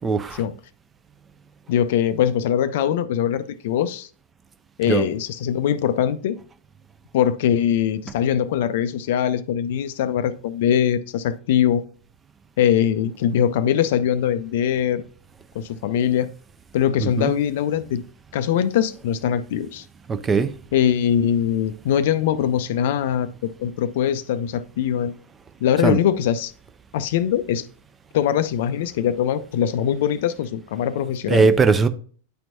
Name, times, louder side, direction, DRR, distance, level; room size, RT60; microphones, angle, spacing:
voice 1, 0.0-0.4 4.8-5.0 17.0-17.3 20.1-20.6 25.8-26.0 31.3-31.9, right 4 dB, 20° right, 0.5 m, -19 dB
voice 2, 1.7-4.1 4.8-6.4 7.1-11.8 12.6-15.0 15.5-16.3 16.7-18.0 18.3-19.8 20.7-25.1 25.6-26.5 26.9-27.7 28.1-31.5, left 9 dB, 55° left, 0.4 m, -22 dB
9.9 x 4.4 x 2.6 m
figure-of-eight pair, 90°, 0 cm